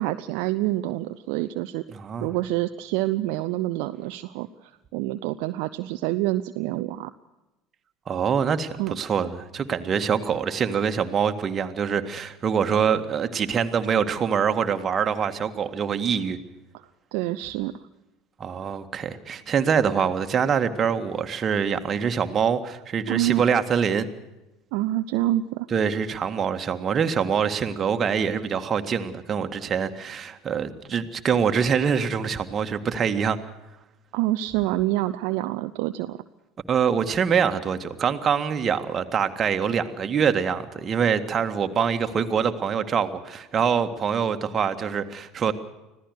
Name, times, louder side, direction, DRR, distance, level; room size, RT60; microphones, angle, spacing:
voice 1, 0.0-1.8 2.2-4.5 4.9-7.1 8.8-9.0 17.1-17.7 23.1-23.4 24.7-25.7 34.1-36.2, right 16 dB, 60° right, 10 dB, 0.7 m, -26 dB
voice 2, 1.9-2.3 8.1-16.4 18.4-24.1 25.7-33.4 36.7-45.5, right 7 dB, 35° right, 7 dB, 1.8 m, -24 dB
25.5 x 16.5 x 6.6 m, 0.99 s
figure-of-eight pair, 70°, 0 cm